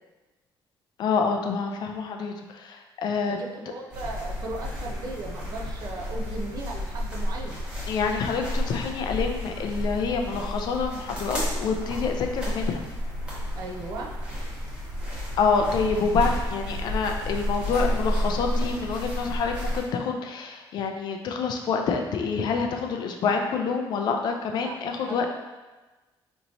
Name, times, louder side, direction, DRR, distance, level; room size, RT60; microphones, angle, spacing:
voice 1, 1.0-3.4 7.9-12.8 15.4-25.3, left 5 dB, 50° left, 3 dB, 0.4 m, -27 dB
voice 2, 3.3-7.6 13.5-14.2 24.6-25.3, right 2 dB, 45° right, 0 dB, 0.5 m, -37 dB
sound 1, 3.9-19.8, equal, 10° right, 1.0 m, -31 dB
4.4 x 2.9 x 2.7 m, 1.2 s
cardioid pair, 170°, 9 cm